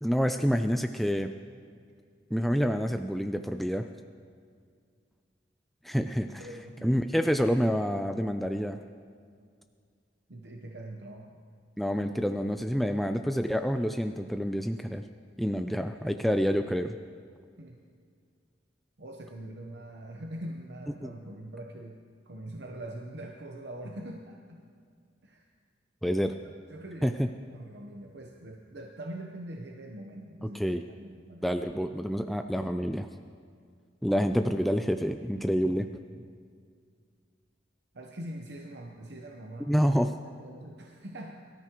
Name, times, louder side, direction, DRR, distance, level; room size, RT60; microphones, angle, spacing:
voice 1, 0.0-1.3 2.3-3.9 5.8-6.4 6.8-8.8 11.8-15.0 15.4-17.0 21.0-21.1 26.0-26.3 27.0-27.3 30.4-30.8 31.4-33.1 34.0-35.9 39.7-40.1, equal, ahead, 6 dB, 0.3 m, -28 dB
voice 2, 6.2-7.3 10.3-11.4 17.6-17.8 19.0-24.6 25.2-25.5 26.4-30.6 31.0-31.5 35.6-36.3 37.9-39.7 40.4-41.4, right 1 dB, 65° right, 1 dB, 0.9 m, -43 dB
23.0 x 13.5 x 3.0 m, 2.1 s
head